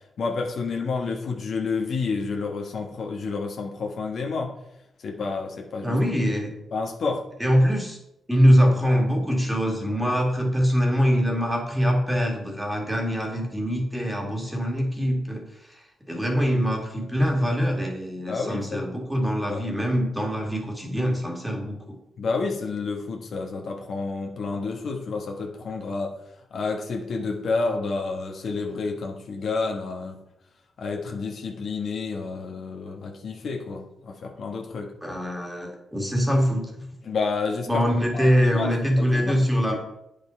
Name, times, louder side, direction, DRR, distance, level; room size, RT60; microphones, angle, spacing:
voice 1, 0.2-4.5 5.0-6.0 6.7-7.2 18.3-18.8 19.5-19.6 22.2-26.1 26.5-30.2 30.8-34.9 37.0-37.9 38.1-38.7 39.0-39.4, left 4 dB, 60° left, 2 dB, 1.3 m, -29 dB
voice 2, 5.8-6.5 7.4-8.0 8.3-21.9 35.0-36.9 37.7-39.7, equal, 5° right, 0 dB, 2.1 m, -23 dB
8.9 x 5.3 x 4.4 m, 0.82 s
cardioid pair, 95°, 0 cm